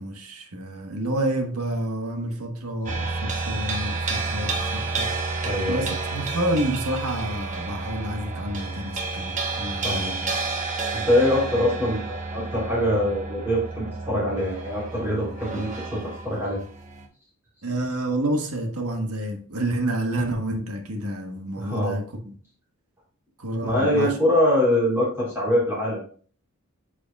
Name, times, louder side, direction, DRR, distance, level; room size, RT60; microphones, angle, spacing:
voice 1, 0.0-5.1 5.7-10.2 17.6-22.3 23.4-24.1, right 1 dB, 85° right, 1.4 m, -29 dB
sound 1, 2.9-17.0, right 3 dB, 35° right, 1.1 m, -30 dB
voice 2, 5.4-6.0 9.8-10.3 10.9-16.6 21.6-22.0 23.6-26.0, left 1 dB, 10° right, 3.3 m, -24 dB
8.8 x 5.1 x 2.4 m
head